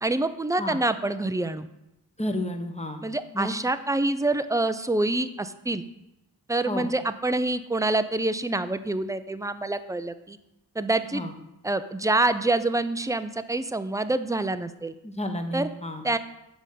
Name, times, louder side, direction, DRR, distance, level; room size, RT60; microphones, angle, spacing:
voice 1, 0.0-1.7 3.0-5.8 6.5-10.4 10.8-11.2 11.6-14.9 15.5-15.7 16.0-16.2, right 2 dB, 10° right, 11 dB, 0.5 m, -26 dB
voice 2, 2.2-3.0 3.3-3.5 6.7-6.9 11.1-11.3 15.0-16.0, left 1 dB, 15° left, 5 dB, 1.1 m, -31 dB
7.7 x 5.1 x 6.7 m, 0.89 s
cardioid pair, 55°, 40 cm